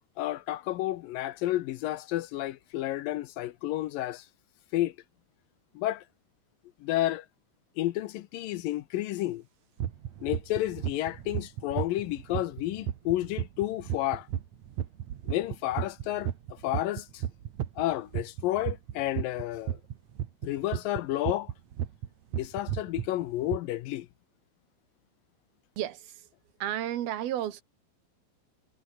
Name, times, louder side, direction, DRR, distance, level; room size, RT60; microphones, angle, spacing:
voice 1, 0.2-4.3 4.7-5.0 5.8-6.0 6.8-7.3 7.8-9.4 10.2-14.3 15.3-17.2 17.8-19.8 20.4-21.5 22.4-24.1, left 15 dB, 75° left, 2.4 m, -31 dB
sound 1, 9.8-22.1 22.3-23.1 23.5-23.6, right 10 dB, 55° right, 2.5 m, -33 dB
voice 2, 25.8-26.3 26.6-27.6, right 12 dB, 80° right, 3.4 m, -32 dB
omnidirectional pair, 4.4 m